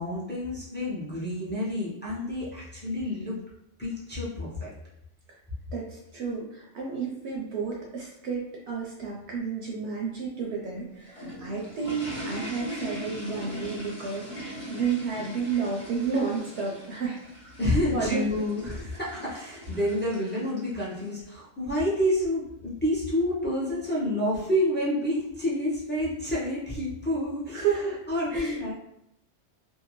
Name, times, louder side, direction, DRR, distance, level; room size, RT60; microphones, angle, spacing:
voice 1, 0.0-3.4 3.8-4.7 17.6-27.7 28.1-28.7, left 1 dB, 15° left, -7 dB, 0.4 m, -28 dB
voice 2, 5.7-17.2 17.9-18.2 27.5-28.0 28.3-28.7, right 5 dB, 65° right, -2 dB, 0.8 m, -31 dB
sound 1, 10.8-21.1, equal, 40° left, 0.9 m, -41 dB
2.7 x 2.2 x 2.9 m, 0.80 s
omnidirectional pair, 1.3 m